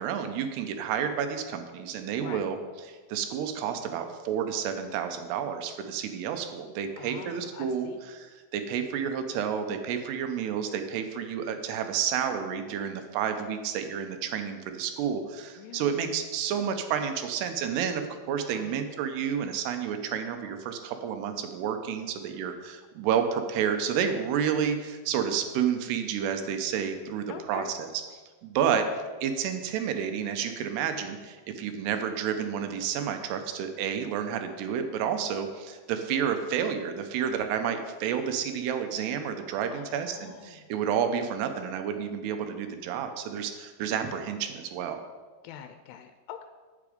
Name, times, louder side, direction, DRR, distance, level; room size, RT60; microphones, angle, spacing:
voice 1, 0.0-2.6 2.9-27.9 28.4-28.9 29.2-45.0, right 8 dB, 80° right, 7 dB, 2.8 m, -30 dB
voice 2, 7.0-8.0 15.6-16.1 18.4-18.8 27.3-27.7 39.7-40.7 45.4-46.4, left 10 dB, 85° left, 8 dB, 2.6 m, -44 dB
8.5 x 8.2 x 5.1 m, 1.4 s
omnidirectional pair, 4.7 m